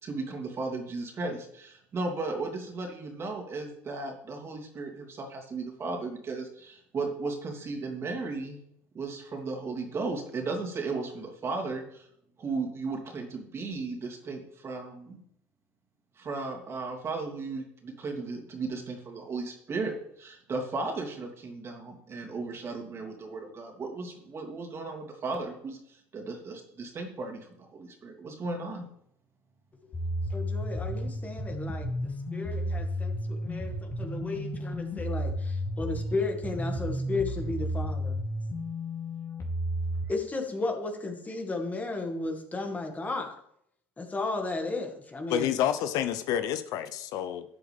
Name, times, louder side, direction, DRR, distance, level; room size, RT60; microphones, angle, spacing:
voice 1, 0.0-8.6 8.9-12.1 12.4-15.2 16.2-28.9, right 3 dB, 40° right, 1 dB, 3.0 m, -35 dB
sound 1, 29.9-40.0, equal, 45° left, 3.1 m, -32 dB
voice 2, 30.3-31.9 32.3-38.2 40.1-43.4 44.0-45.6, left 3 dB, 25° left, 3 dB, 2.1 m, -34 dB
voice 3, 45.3-47.4, left 10 dB, 65° left, 11 dB, 0.7 m, -29 dB
13.0 x 7.7 x 3.6 m, 0.70 s
hypercardioid pair, 75°, 7 cm